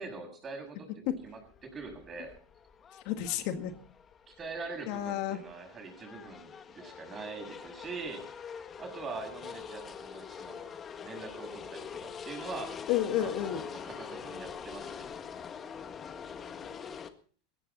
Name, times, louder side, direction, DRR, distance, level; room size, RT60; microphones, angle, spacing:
voice 1, 0.0-2.3 4.3-8.3 8.8-10.7 11.0-12.7 13.2-15.1, right 4 dB, 30° right, 5 dB, 7.0 m, -43 dB
sound 1, 1.1-17.1, left 7 dB, 30° left, 1.6 m, -45 dB
voice 2, 2.9-3.7 4.9-5.4 12.9-13.6, left 11 dB, 55° left, 8 dB, 1.9 m, -31 dB
20.0 x 15.5 x 4.2 m, 0.43 s
hypercardioid pair, 100°, 0 cm